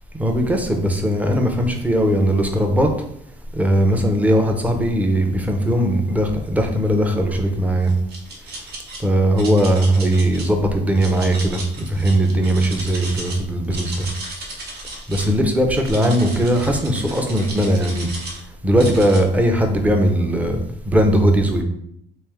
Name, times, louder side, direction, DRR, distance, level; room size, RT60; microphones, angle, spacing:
voice 1, 0.2-2.9 3.5-7.9 9.0-14.1 15.1-18.1 18.6-21.6, right 1 dB, 10° right, 0.6 m, -19 dB
sound 1, 7.8-9.0 9.4-10.5 11.0-13.4 13.6-15.3 15.8-18.4 18.8-19.2, right 2 dB, 70° right, 1.1 m, -35 dB
3.2 x 3.0 x 3.5 m
cardioid pair, 110°, 17 cm